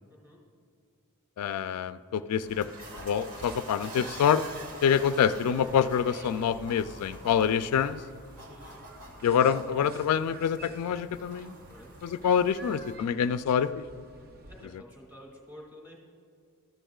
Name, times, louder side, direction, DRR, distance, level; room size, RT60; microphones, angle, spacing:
voice 1, 0.1-0.4 8.4-8.8 11.7-11.9 12.4-12.7 14.2-16.0, left 1 dB, 10° right, -3 dB, 2.3 m, -51 dB
voice 2, 1.4-2.7 3.0-4.4 4.8-8.0 9.2-11.6 12.0-13.8, left 8 dB, 90° left, 12 dB, 0.3 m, -26 dB
sound 1, 2.1-12.9, right 1 dB, 70° right, 1.3 m, -47 dB
sound 2, 2.4-14.7, right 2 dB, 45° right, 0.5 m, -50 dB
13.5 x 10.0 x 2.3 m, 2.3 s
head